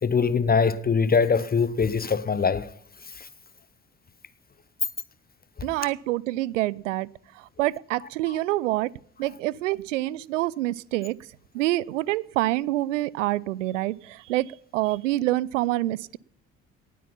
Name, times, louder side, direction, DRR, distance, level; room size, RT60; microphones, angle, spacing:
voice 1, 0.0-2.7 3.2-3.3 8.3-8.4, left 5 dB, 25° left, 0.8 m, -23 dB
voice 2, 5.6-7.1 7.6-8.9 9.2-11.2 11.5-16.2, right 17 dB, 75° right, 0.5 m, -26 dB
18.5 x 8.4 x 5.6 m
figure-of-eight pair, 45°, 37 cm